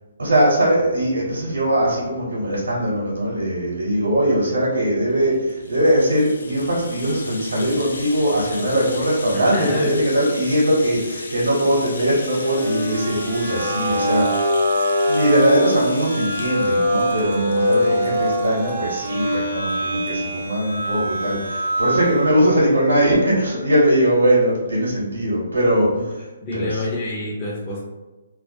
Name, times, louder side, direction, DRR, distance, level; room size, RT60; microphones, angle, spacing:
voice 1, 0.2-14.7 15.1-26.0 26.5-26.8, equal, 80° right, -5 dB, 0.8 m, -20 dB
Rattle (instrument), 5.2-19.4 19.7-19.8 20.1-20.2, left 3 dB, 75° left, 0.4 m, -37 dB
voice 2, 9.3-10.0 17.8-18.0 26.4-27.8, left 1 dB, 25° left, -8 dB, 0.5 m, -27 dB
sound 1, 12.1-22.4, equal, 55° right, 0.5 m, -23 dB
2.3 x 2.0 x 2.7 m, 1.1 s
hypercardioid pair, 145°, 0 cm